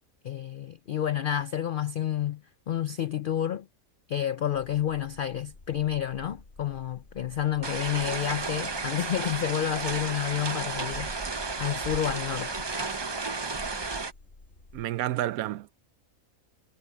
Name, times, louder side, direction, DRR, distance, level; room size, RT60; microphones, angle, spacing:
voice 1, 0.2-2.4 2.7-3.6 4.1-11.2 11.6-12.6, left 10 dB, 80° left, 0.4 m, -30 dB
sound 1, 4.5-14.9, left 2 dB, 50° left, 3.0 m, -52 dB
sound 2, 7.6-14.1, right 4 dB, 25° right, 0.5 m, -33 dB
voice 2, 14.7-15.9, right 14 dB, 80° right, 1.0 m, -30 dB
omnidirectional pair, 1.5 m